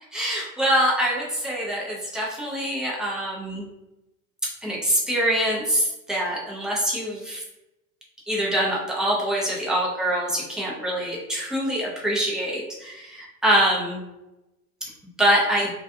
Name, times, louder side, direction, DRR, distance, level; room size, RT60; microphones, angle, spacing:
voice 1, 0.1-3.7 4.4-7.4 8.3-14.0 14.8-14.9 15.2-15.7, equal, ahead, -4 dB, 0.5 m, -24 dB
2.4 x 2.3 x 2.5 m, 0.96 s
hypercardioid pair, 95°, 46 cm